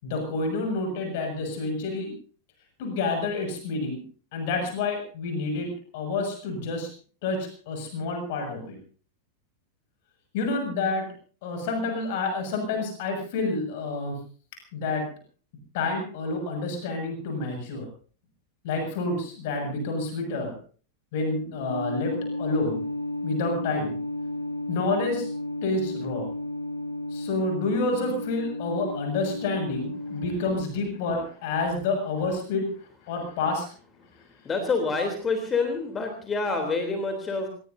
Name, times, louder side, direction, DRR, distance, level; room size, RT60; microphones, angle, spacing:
voice 1, 0.0-2.1 2.8-4.0 4.3-6.9 7.2-8.8 10.3-11.0 11.4-14.2 14.7-15.1 15.7-17.9 18.6-20.5 21.1-22.8 23.2-24.0 24.7-25.3 25.6-26.3 27.1-32.7 33.0-33.7, left 3 dB, 50° left, 4 dB, 7.0 m, -29 dB
sound 1, 21.7-30.7, left 1 dB, 90° left, 2.1 m, -33 dB
voice 2, 34.4-37.5, left 4 dB, 20° left, 5 dB, 3.5 m, -27 dB
27.5 x 18.0 x 2.8 m, 0.42 s
figure-of-eight pair, 90°, 0 cm